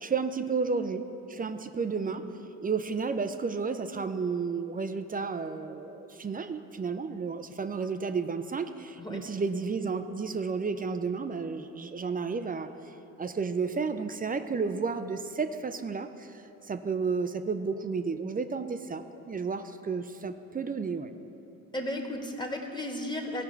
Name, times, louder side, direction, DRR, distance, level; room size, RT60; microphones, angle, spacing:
voice 1, 0.0-2.2 2.6-12.7 13.2-21.1, right 5 dB, 20° right, 9 dB, 0.5 m, -32 dB
voice 2, 21.7-23.4, left 1 dB, 10° left, 2 dB, 1.4 m, -34 dB
16.5 x 5.7 x 4.5 m, 2.9 s
hypercardioid pair, 60°, 43 cm